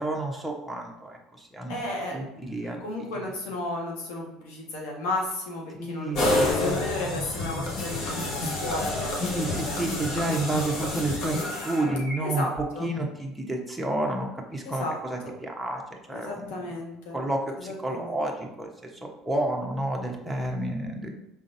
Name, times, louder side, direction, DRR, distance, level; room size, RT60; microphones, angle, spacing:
voice 1, 0.0-2.8 5.8-6.8 7.1-7.2 7.5-7.7 9.2-11.4 11.6-12.5 12.8-15.8 16.1-16.7 17.1-21.2, right 1 dB, 5° right, 0 dB, 1.0 m, -30 dB
voice 2, 1.7-2.2 2.8-6.1 6.4-9.8 12.2-12.9 14.6-15.0 15.2-15.3 16.1-17.2 17.6-18.1, left 2 dB, 80° left, -1 dB, 1.4 m, -33 dB
sound 1, 6.2-12.2, left 2 dB, 60° left, 1.3 m, -29 dB
5.1 x 3.7 x 2.6 m, 0.90 s
supercardioid pair, 95°, 0 cm